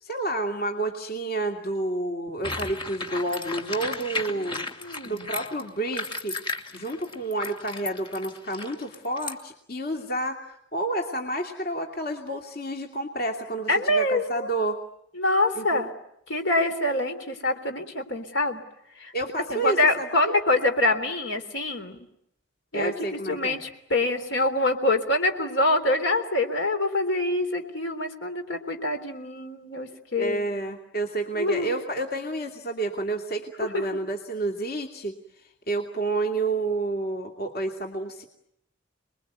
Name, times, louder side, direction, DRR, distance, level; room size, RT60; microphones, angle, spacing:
voice 1, 0.0-4.6 5.0-6.4 6.7-14.8 15.5-15.8 19.1-20.4 22.7-23.6 30.2-35.2 35.7-38.2, right 2 dB, 50° left, 3 dB, 2.7 m, -30 dB
sound 1, 2.4-9.3, left 3 dB, 25° left, 2.4 m, -35 dB
voice 2, 4.8-5.3 13.7-14.5 15.1-15.9 16.3-18.6 18.9-19.1 19.5-22.0 22.7-30.4 31.3-31.7 33.6-34.0, left 2 dB, 70° left, 7 dB, 3.6 m, -25 dB
29.0 x 21.5 x 9.5 m, 0.78 s
head